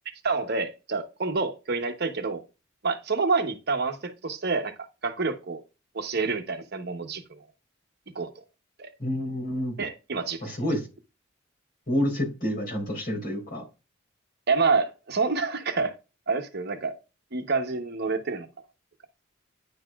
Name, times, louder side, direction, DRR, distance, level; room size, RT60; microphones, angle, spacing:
voice 1, 0.2-2.4 2.8-4.7 5.0-5.6 5.9-7.4 8.1-8.3 8.8-8.9 9.8-10.5 14.5-15.9 16.3-16.9 17.3-18.5, right 4 dB, 50° right, 1.0 m, -27 dB
voice 2, 9.0-9.7 10.4-10.8 11.9-13.6, equal, 45° left, 4.0 m, -28 dB
9.8 x 6.5 x 2.4 m
head